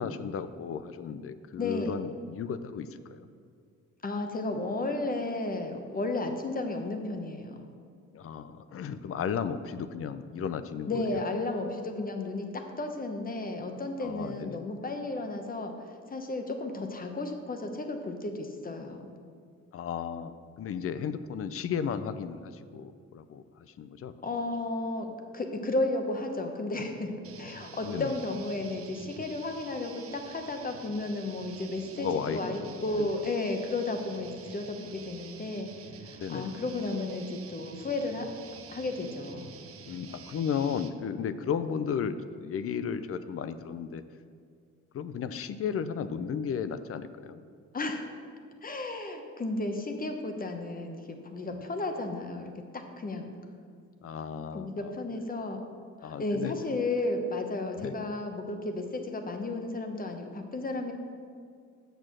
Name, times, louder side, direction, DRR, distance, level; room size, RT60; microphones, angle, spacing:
voice 1, 0.0-3.3 8.1-11.2 14.0-14.6 19.7-24.1 27.8-28.1 31.9-33.1 36.2-36.5 39.9-44.0 44.9-47.4 54.0-55.0 56.0-56.5 57.8-57.9, left 7 dB, 50° left, 13 dB, 0.5 m, -34 dB
voice 2, 1.6-1.9 4.0-7.6 10.9-15.7 16.1-19.1 24.2-35.7 36.0-38.3 38.7-39.5 47.7-48.1 48.6-53.3 54.5-55.6 56.0-60.9, left 2 dB, 30° left, 5 dB, 1.0 m, -33 dB
sound 1, 27.2-41.0, right 6 dB, 50° right, 0.7 m, -49 dB
6.7 x 6.5 x 6.1 m, 2.2 s
cardioid pair, 90°, 30 cm